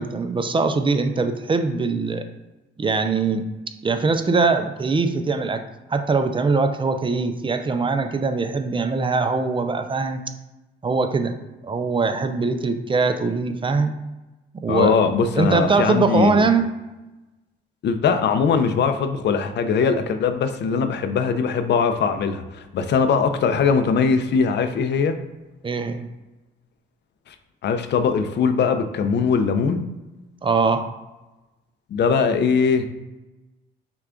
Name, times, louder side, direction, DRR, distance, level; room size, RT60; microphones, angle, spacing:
voice 1, 0.0-2.2 2.8-3.5 3.8-5.6 5.9-10.2 10.8-11.3 11.6-13.9 14.6-14.9 15.4-16.7 25.6-26.1 30.4-30.9, right 4 dB, 25° right, 8 dB, 0.5 m, -22 dB
voice 2, 14.7-16.5 17.8-25.2 27.6-29.8 31.9-32.8, left 5 dB, 60° left, 9 dB, 0.6 m, -21 dB
5.7 x 2.4 x 3.7 m, 1.1 s
cardioid pair, 90°, 20 cm